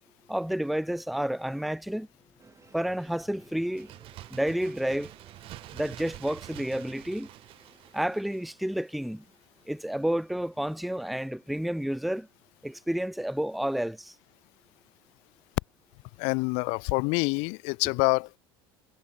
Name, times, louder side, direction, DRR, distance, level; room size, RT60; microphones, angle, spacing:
voice 1, 0.3-2.1 2.7-3.9 4.3-5.1 5.7-7.3 7.9-9.2 9.7-12.3 12.6-14.1, equal, ahead, 0.7 m, -30 dB
sound 1, 1.9-5.3, left 5 dB, 25° left, 6.5 m, -61 dB
sound 2, 2.4-10.4 10.8-10.9, right 5 dB, 25° right, 7.8 m, -60 dB
Bird, 3.6-9.2 9.4-9.5, right 16 dB, 45° right, 0.8 m, -47 dB
voice 2, 16.2-18.4, left 33 dB, 50° left, 0.4 m, -26 dB
figure-of-eight pair, 70°, 13 cm